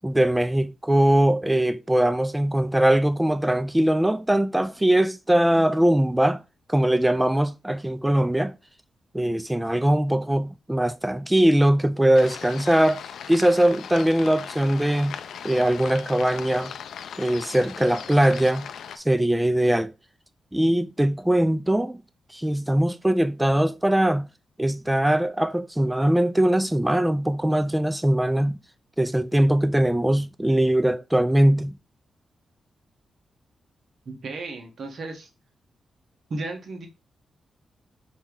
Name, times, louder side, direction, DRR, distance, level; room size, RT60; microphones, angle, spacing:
voice 1, 0.0-6.4 6.7-8.5 9.1-13.0 13.3-15.2 15.4-16.7 17.2-18.7 19.0-19.9 20.5-22.0 22.3-24.3 24.6-28.6 29.0-31.7, right 1 dB, 10° right, 0.4 m, -21 dB
sound 1, 12.1-19.0, left 8 dB, 85° left, 0.3 m, -38 dB
voice 2, 34.0-35.3 36.3-36.9, right 2 dB, 60° right, 1.3 m, -34 dB
4.3 x 2.9 x 3.7 m
cardioid pair, 85°, 0 cm